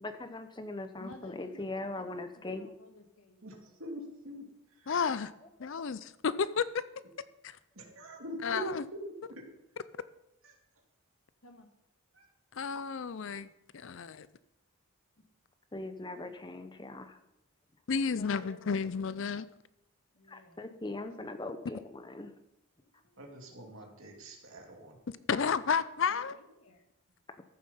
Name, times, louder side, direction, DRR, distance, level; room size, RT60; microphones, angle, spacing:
voice 1, 0.0-2.7 15.7-17.2 20.3-22.3, left 2 dB, 20° left, 8 dB, 0.7 m, -40 dB
voice 2, 1.0-3.4 11.4-11.7 15.2-15.3 16.2-16.6 18.0-19.3 20.1-20.8 22.8-23.3 26.1-26.8, left 2 dB, 70° left, 4 dB, 1.8 m, -54 dB
voice 3, 3.4-4.4 4.8-4.9 7.8-8.6 8.9-9.0 9.3-9.4 10.4-10.5 12.2-12.3 23.2-25.0, right 1 dB, 65° right, 1 dB, 2.6 m, -44 dB
voice 4, 4.9-5.3 5.6-6.8 7.4-7.6 8.4-8.8 12.5-13.5 13.7-14.3 17.9-19.5 25.3-26.4, left 5 dB, 55° left, 15 dB, 0.5 m, -31 dB
14.5 x 7.3 x 5.6 m, 0.86 s
head